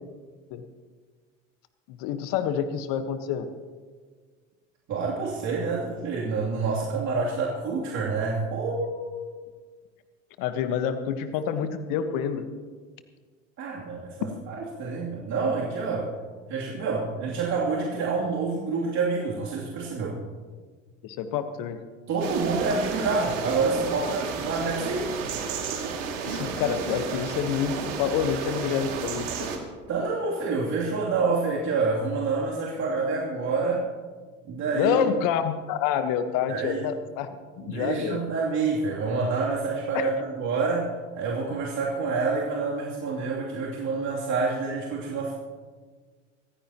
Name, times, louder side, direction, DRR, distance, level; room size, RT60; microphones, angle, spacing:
voice 1, 1.9-3.5 10.4-12.5 21.0-21.8 26.2-29.3 34.7-37.3 37.6-38.3 39.9-40.1, left 8 dB, 60° left, 9 dB, 1.4 m, -27 dB
voice 2, 4.9-9.4 13.6-16.1 16.5-20.2 22.1-25.1 29.9-33.9 34.5-35.1 36.5-36.9 37.6-45.3, right 4 dB, 50° right, -5 dB, 3.0 m, -27 dB
sound 1, 22.2-29.6, right 5 dB, 75° right, 2.6 m, -32 dB
24.0 x 15.5 x 3.0 m, 1.5 s
hypercardioid pair, 75°, 38 cm